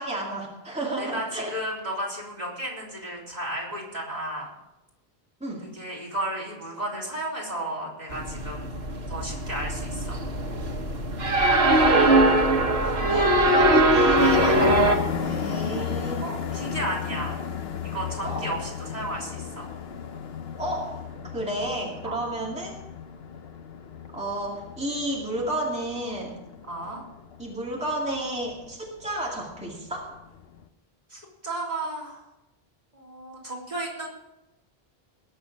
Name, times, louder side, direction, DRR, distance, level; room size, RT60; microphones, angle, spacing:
voice 1, 0.0-1.5 5.4-5.7 12.9-16.2 18.2-18.5 20.6-22.8 24.1-26.4 27.4-30.1, right 1 dB, 5° right, -3 dB, 2.3 m, -32 dB
voice 2, 1.0-4.5 5.7-8.7 9.1-10.2 16.2-17.3 17.8-19.7 22.0-22.2 26.7-27.0 31.1-32.2 32.9-34.1, right 1 dB, 45° right, -3 dB, 3.7 m, -33 dB
sound 1, 8.1-15.0, right 1 dB, 80° right, 1.6 m, -21 dB
sound 2, 14.2-30.7, left 7 dB, 75° left, 1.1 m, -35 dB
20.5 x 7.1 x 5.3 m, 0.96 s
omnidirectional pair, 1.0 m